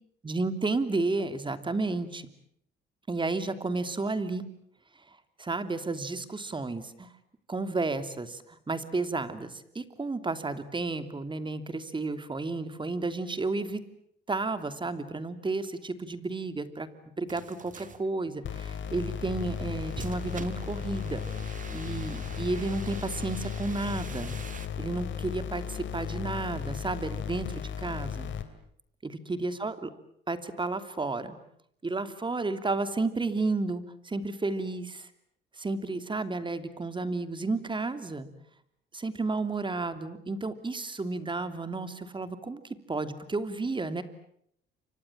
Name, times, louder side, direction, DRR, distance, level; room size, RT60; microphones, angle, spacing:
voice 1, 0.2-2.3 3.1-4.5 5.4-7.1 7.5-13.8 14.3-16.9 17.2-21.2 21.7-24.4 24.8-28.3 29.0-29.9 30.3-31.4 31.8-35.1 35.5-38.3 38.9-42.6 42.9-44.0, right 3 dB, 25° right, 11 dB, 2.9 m, -32 dB
sound 1, 17.3-24.7, right 5 dB, 40° right, 2.5 m, -45 dB
sound 2, 18.4-28.4, left 8 dB, 70° left, 3.0 m, -36 dB
29.5 x 25.0 x 7.5 m, 0.69 s
cardioid pair, 90°, 20 cm